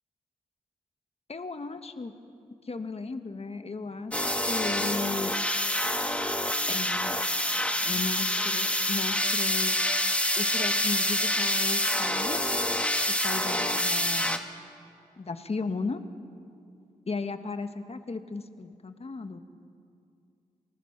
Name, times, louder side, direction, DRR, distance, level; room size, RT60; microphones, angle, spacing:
voice 1, 1.3-2.1 2.6-5.3 6.7-7.2 7.8-9.8 10.4-12.5 13.1-14.4 15.2-16.0 17.1-19.4, left 4 dB, 45° left, 8 dB, 1.5 m, -35 dB
sound 1, 4.1-14.4, left 1 dB, 10° left, 1.7 m, -27 dB
26.0 x 19.5 x 5.8 m, 2.4 s
cardioid pair, 50°, 15 cm